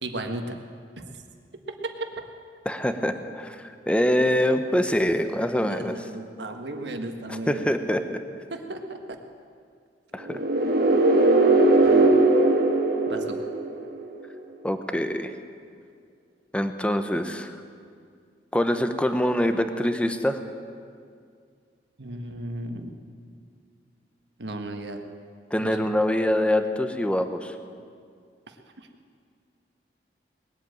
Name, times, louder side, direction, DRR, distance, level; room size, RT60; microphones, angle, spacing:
voice 1, 0.0-0.5 5.7-7.7 8.5-9.2 11.9-12.2 13.1-13.4 22.0-22.9 24.4-25.0 25.6-25.9 28.8-28.9, right 1 dB, 80° right, 5 dB, 1.5 m, -35 dB
voice 2, 2.7-6.1 7.3-8.2 10.1-10.4 14.6-15.3 16.5-17.5 18.5-20.4 25.5-27.6, left 1 dB, 5° left, 8 dB, 0.7 m, -24 dB
sound 1, 10.2-14.0, right 2 dB, 60° right, 1.5 m, -19 dB
20.0 x 8.1 x 8.9 m, 2.2 s
head